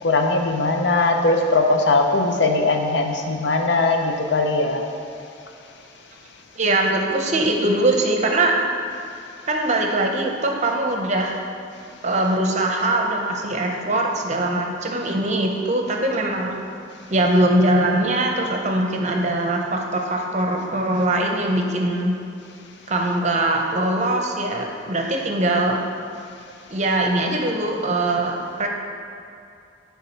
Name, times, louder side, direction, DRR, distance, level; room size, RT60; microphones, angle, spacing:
voice 1, 0.0-4.8, left 3 dB, 70° left, 3 dB, 0.7 m, -20 dB
voice 2, 6.6-8.5 9.5-11.4 12.0-16.6 17.1-22.1 22.9-25.8 26.7-28.7, right 1 dB, 40° right, 1 dB, 0.7 m, -22 dB
10.5 x 3.5 x 4.5 m, 2.6 s
head